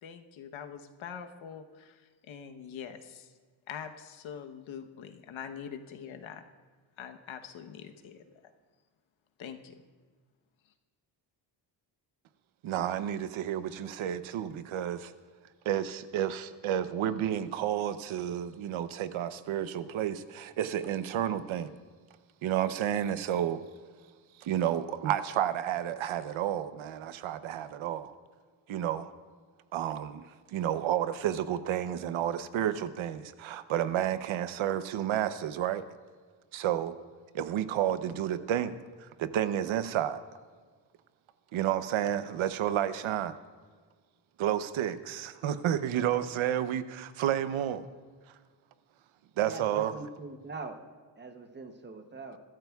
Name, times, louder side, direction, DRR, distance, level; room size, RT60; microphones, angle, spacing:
voice 1, 0.0-3.3 3.7-6.4 7.0-8.2 9.4-9.8, left 8 dB, 75° left, 6 dB, 1.1 m, -44 dB
voice 2, 12.6-15.1 15.7-21.7 22.4-23.6 24.4-28.1 28.7-29.1 29.7-35.8 36.5-36.9 37.3-38.8 39.2-40.2 41.5-43.3 44.4-47.9 49.4-50.0, right 10 dB, 80° right, 12 dB, 0.8 m, -31 dB
voice 3, 49.4-50.8 51.2-52.4, right 3 dB, 25° right, 6 dB, 0.8 m, -42 dB
23.0 x 13.5 x 2.3 m, 1.5 s
wide cardioid pair, 180°, 47 cm